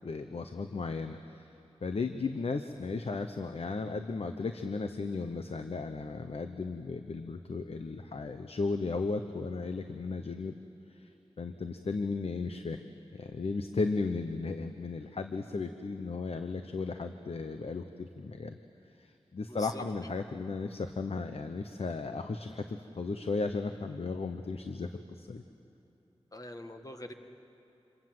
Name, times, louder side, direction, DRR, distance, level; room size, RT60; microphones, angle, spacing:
voice 1, 0.0-1.5 1.8-10.5 10.9-11.1 11.4-12.8 13.1-18.6 19.0-25.4, left 4 dB, 70° left, 7 dB, 0.9 m, -35 dB
voice 2, 19.5-19.8 26.3-27.1, left 1 dB, 35° left, 6 dB, 1.7 m, -44 dB
27.5 x 23.5 x 7.8 m, 2.9 s
wide cardioid pair, 75°, 11 cm